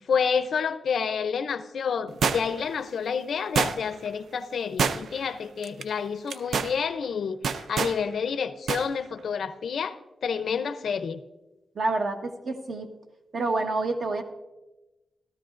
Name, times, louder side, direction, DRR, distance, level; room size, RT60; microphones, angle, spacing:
voice 1, 0.1-10.0 10.2-11.2, left 6 dB, 75° left, 12 dB, 0.6 m, -29 dB
sound 1, 2.2-2.7 3.6-4.1 4.8-5.3 5.6-5.8 6.3-6.7 7.4-8.0 8.7-8.9 9.2-9.3, right 6 dB, 80° right, 0.4 m, -26 dB
voice 2, 11.7-12.9 13.3-14.2, right 3 dB, 55° right, 4 dB, 1.2 m, -28 dB
15.5 x 13.0 x 2.5 m, 1.0 s
wide cardioid pair, 135°, 0 cm